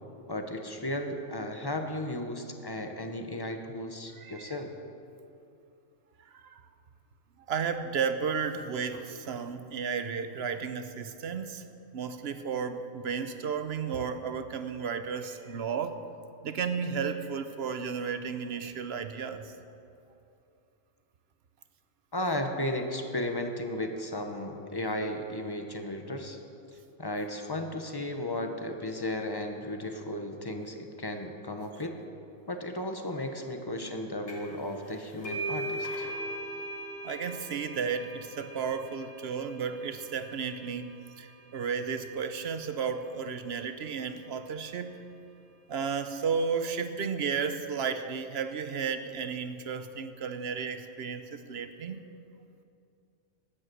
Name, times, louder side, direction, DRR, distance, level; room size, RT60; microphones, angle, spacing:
voice 1, 0.3-4.7 22.1-26.4 27.0-32.0 32.5-36.1, left 1 dB, 20° left, 5 dB, 0.9 m, -35 dB
voice 2, 4.2-4.6 6.3-6.6 7.5-11.6 11.9-16.0 16.4-19.5 37.0-45.0 45.7-52.0, right 6 dB, 60° right, 9 dB, 0.9 m, -33 dB
sound 1, 34.3-34.6 34.9-42.2, right 1 dB, 60° left, 2.7 m, -39 dB
13.0 x 9.5 x 7.7 m, 2.7 s
omnidirectional pair, 1.3 m